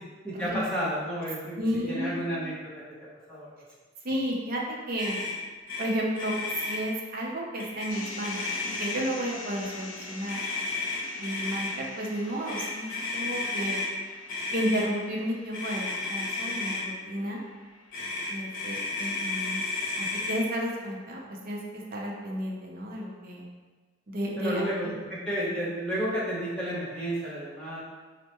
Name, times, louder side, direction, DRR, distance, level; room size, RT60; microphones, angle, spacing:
voice 1, 0.2-1.6 1.9-2.7 3.3-3.5 24.4-27.8, equal, 5° left, -9 dB, 0.9 m, -31 dB
voice 2, 1.6-2.5 4.0-5.2 5.8-6.4 6.6-8.5 8.8-10.4 11.2-13.8 14.5-17.4 18.3-19.6 20.0-23.5 24.1-24.9, equal, 50° right, -2 dB, 0.6 m, -32 dB
Motor vehicle (road), 5.0-5.3 5.7-5.8 6.1-6.8 7.6-7.9 8.2-9.1 10.3-11.7 12.4-13.9 14.3-14.9 15.5-16.8 17.9-20.4, left 3 dB, 45° left, 1.2 m, -32 dB
sound 1, 7.9-20.0, left 3 dB, 80° left, 0.4 m, -44 dB
4.4 x 2.1 x 2.9 m, 1.4 s
head